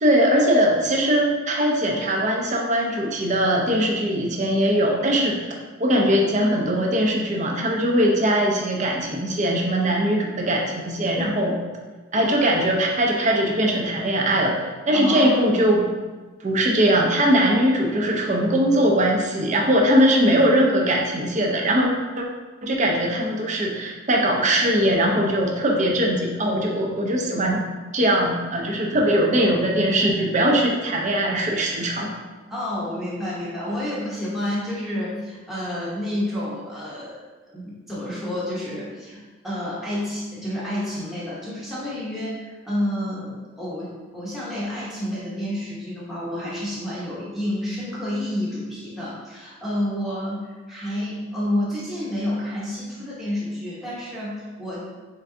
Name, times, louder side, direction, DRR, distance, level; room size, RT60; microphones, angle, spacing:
voice 1, 0.0-5.4 5.8-11.5 12.1-15.9 16.4-21.9 22.2-22.3 22.6-27.6 27.9-32.1, equal, 35° right, 0 dB, 0.6 m, -21 dB
voice 2, 14.9-15.3 28.9-29.0 32.5-37.2 37.5-54.8, left 1 dB, ahead, -9 dB, 0.9 m, -29 dB
3.8 x 3.4 x 3.7 m, 1.3 s
head